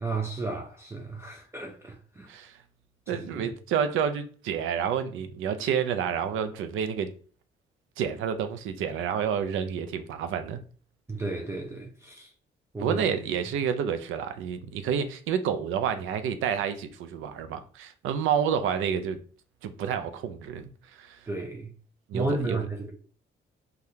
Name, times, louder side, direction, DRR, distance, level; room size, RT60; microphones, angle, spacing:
voice 1, 0.0-2.3 3.1-3.5 11.1-12.3 12.7-13.0 21.3-21.7 22.1-22.9, right 2 dB, 15° right, 0.4 m, -33 dB
voice 2, 3.1-7.1 8.0-10.6 12.8-19.2 19.6-21.2 22.1-22.6, right 8 dB, 85° right, 0.4 m, -29 dB
3.4 x 2.3 x 2.7 m
cardioid pair, 90°, 20 cm